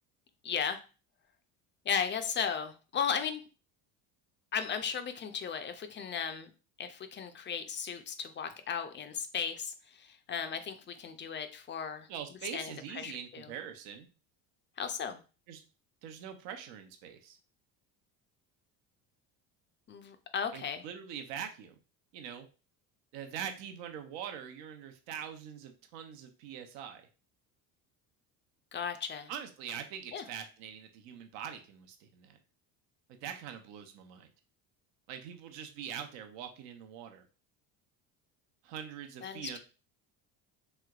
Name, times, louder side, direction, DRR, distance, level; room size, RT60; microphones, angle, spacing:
voice 1, 0.4-0.8 1.9-3.4 4.5-6.5 6.8-12.1 12.5-13.5 14.8-15.2 19.9-20.8 28.7-29.3 30.1-30.2 39.2-39.6, left 7 dB, 30° left, 8 dB, 0.4 m, -36 dB
voice 2, 12.1-14.1 15.5-15.6 16.0-17.4 20.5-21.7 22.1-22.5 23.1-27.0 29.3-32.4 33.2-34.3 35.1-37.2 38.6-39.6, right 8 dB, 75° right, 6 dB, 0.7 m, -43 dB
3.3 x 3.0 x 2.3 m, 0.34 s
supercardioid pair, 85°, 44 cm